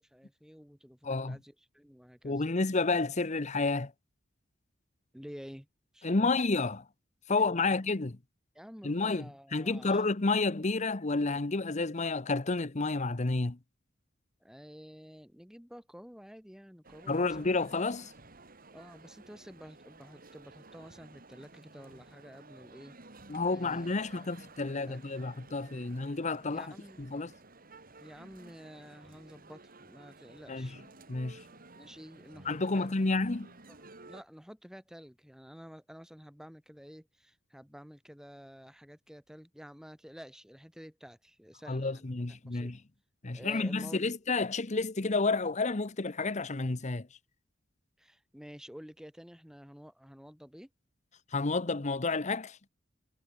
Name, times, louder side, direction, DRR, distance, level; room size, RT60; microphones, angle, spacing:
voice 1, 0.0-2.4 5.1-5.7 5.9-6.3 7.4-7.9 8.5-10.1 14.4-17.5 18.7-23.0 23.5-24.2 24.6-25.0 26.5-27.0 28.0-30.8 31.8-33.1 33.7-33.8 34.0-42.1 42.4-42.7 43.3-44.1 48.0-50.7, equal, 5° right, 3.1 m, -50 dB
voice 2, 1.0-1.4 2.2-3.9 6.0-6.8 7.3-8.2 8.8-13.6 17.1-18.1 23.3-26.7 27.0-27.3 30.5-30.7 31.1-31.4 32.4-33.5 41.7-42.8 43.2-47.1 51.3-52.6, left 3 dB, 35° left, 0.9 m, -30 dB
Male speech man speaking, 16.8-34.2, right 3 dB, 45° right, 3.9 m, -54 dB
head